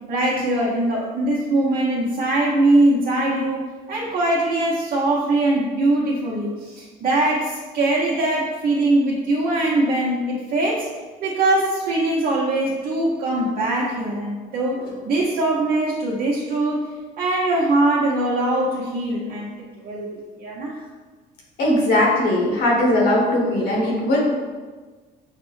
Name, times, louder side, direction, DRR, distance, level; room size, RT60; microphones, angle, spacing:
voice 1, 0.1-3.6 3.9-10.8 11.2-16.8 17.2-20.7, right 2 dB, 60° right, -6 dB, 0.8 m, -21 dB
voice 2, 21.6-24.2, left 1 dB, 75° left, -2 dB, 1.2 m, -19 dB
5.8 x 2.1 x 3.1 m, 1.4 s
cardioid pair, 110°, 17 cm